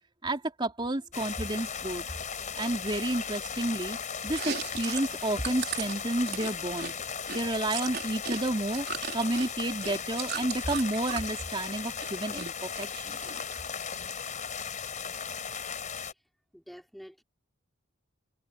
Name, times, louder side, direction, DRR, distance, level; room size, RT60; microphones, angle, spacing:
voice 1, 0.2-2.0 2.6-4.0 4.2-6.9 7.3-8.9 9.1-13.2, right 1 dB, 25° right, 3.3 m, -31 dB
sound 1, 1.1-16.1, left 6 dB, 40° left, 4.9 m, -37 dB
Chewing mastication, 4.3-8.4 8.7-11.3 11.7-12.5 12.8-13.7, right 7 dB, 50° right, 4.3 m, -37 dB
voice 2, 16.5-17.2, equal, ahead, 5.0 m, -47 dB
head